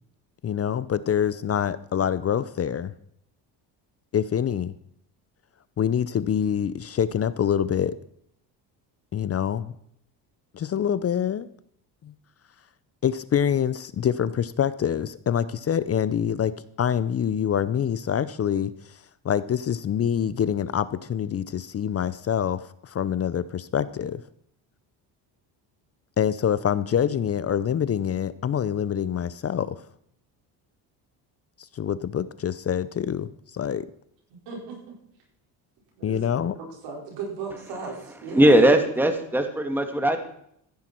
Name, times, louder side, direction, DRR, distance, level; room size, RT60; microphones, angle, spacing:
voice 1, 0.4-2.9 4.1-4.8 5.8-8.0 9.1-9.7 10.5-11.5 12.0-12.1 13.0-19.0 19.2-24.2 26.2-29.8 31.6-33.9 36.0-36.6, left 9 dB, 35° left, 16 dB, 0.6 m, -26 dB
voice 2, 34.3-35.0 36.0-38.5, right 4 dB, 85° right, -1 dB, 5.4 m, -37 dB
voice 3, 38.3-40.2, right 1 dB, 5° right, 6 dB, 1.7 m, -19 dB
14.5 x 10.5 x 4.5 m, 0.70 s
cardioid pair, 90°, 42 cm